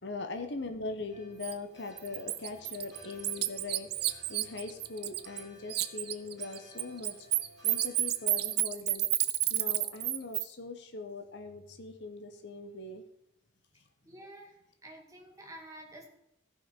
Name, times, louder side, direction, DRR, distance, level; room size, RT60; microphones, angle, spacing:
voice 1, 0.0-7.2 7.6-9.1 9.5-13.0, left 3 dB, 65° left, 6 dB, 1.0 m, -41 dB
Mt Marry Bells, 1.1-8.6, equal, 20° left, 5.0 m, -57 dB
Bird, 1.4-1.5 2.0-5.4 5.7-10.4, right 15 dB, 55° right, 0.6 m, -30 dB
voice 2, 14.0-16.1, right 1 dB, 15° right, 1 dB, 2.2 m, -50 dB
15.0 x 5.7 x 5.2 m, 0.83 s
head